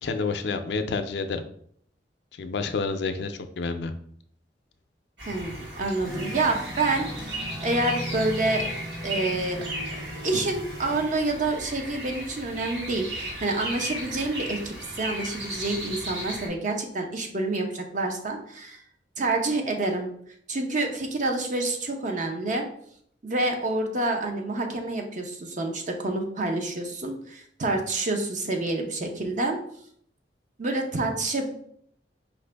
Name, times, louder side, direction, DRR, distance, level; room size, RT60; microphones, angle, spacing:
voice 1, 0.0-1.4 2.4-3.9, left 4 dB, 70° left, 8 dB, 0.4 m, -29 dB
sound 1, 5.2-16.5, right 1 dB, 70° right, 1.4 m, -36 dB
voice 2, 5.3-7.3 7.6-8.6 9.0-9.6 9.9-18.8 19.2-20.1 20.5-22.7 23.2-29.6 30.6-31.6, right 2 dB, 45° right, 3 dB, 0.7 m, -28 dB
sound 2, 6.0-11.0, equal, 20° right, 0.9 m, -37 dB
4.9 x 2.6 x 3.3 m, 0.65 s
head